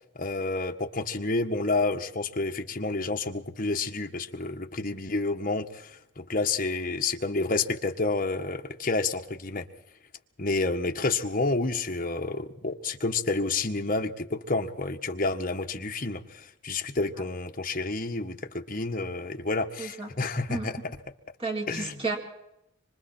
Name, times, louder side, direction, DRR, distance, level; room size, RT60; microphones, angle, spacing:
voice 1, 0.1-9.7 10.4-20.7 21.7-21.9, left 3 dB, 40° left, 4 dB, 1.6 m, -29 dB
voice 2, 19.8-20.1 20.5-20.7 21.4-22.2, right 3 dB, 25° right, 1 dB, 4.3 m, -31 dB
26.0 x 25.5 x 4.5 m, 0.81 s
head